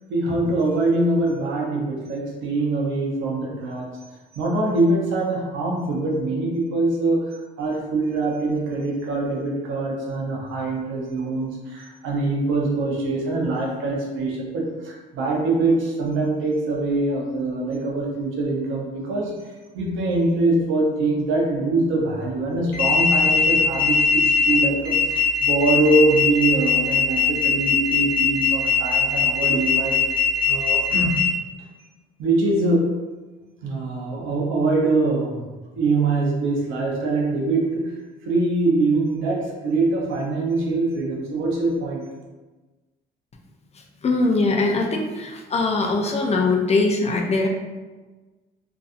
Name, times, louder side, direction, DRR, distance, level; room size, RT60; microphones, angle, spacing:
voice 1, 0.1-3.9 4.3-19.3 19.7-31.2 32.2-32.9 33.6-38.0 38.3-42.1, right 2 dB, 85° right, -2 dB, 0.7 m, -23 dB
sound 1, 22.7-31.2, left 5 dB, 55° left, 1.0 m, -20 dB
voice 2, 44.0-47.5, left 3 dB, 35° left, 0 dB, 0.4 m, -21 dB
2.6 x 2.3 x 2.4 m, 1.2 s
cardioid pair, 90°, 20 cm